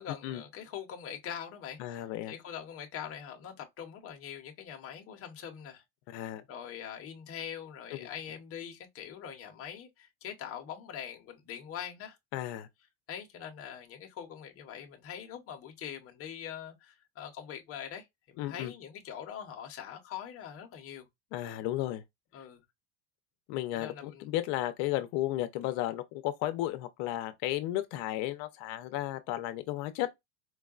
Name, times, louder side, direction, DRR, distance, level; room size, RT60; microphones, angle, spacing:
voice 1, 0.0-5.8 6.5-12.2 13.1-21.1 22.3-22.6 23.7-24.3, left 9 dB, 30° left, 0.7 m, -43 dB
voice 2, 1.8-2.3 6.1-6.4 7.9-8.1 12.3-12.7 18.4-18.7 21.3-22.0 23.5-30.1, left 14 dB, 75° left, 0.7 m, -34 dB
4.6 x 2.2 x 2.3 m
cardioid pair, 160°, 45 cm